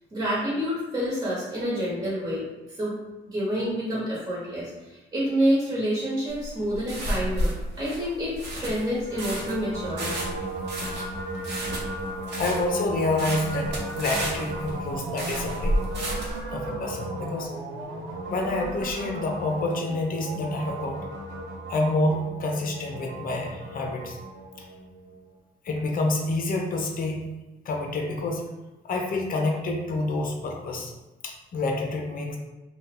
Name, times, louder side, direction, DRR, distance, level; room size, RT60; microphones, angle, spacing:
voice 1, 0.1-3.0 3.3-10.3 11.9-12.0, equal, 25° right, -8 dB, 1.1 m, -28 dB
sound 1, 6.3-16.4, equal, 60° right, 0.9 m, -31 dB
sound 2, 9.0-25.3, right 2 dB, 90° right, 1.0 m, -35 dB
voice 2, 12.4-15.8 16.5-17.5 18.3-21.1 21.7-24.2 25.6-27.3 27.7-28.4 28.8-30.9 31.2-32.4, left 2 dB, 45° left, 1 dB, 0.6 m, -28 dB
2.8 x 2.3 x 3.6 m, 1.1 s
cardioid pair, 90°, 20 cm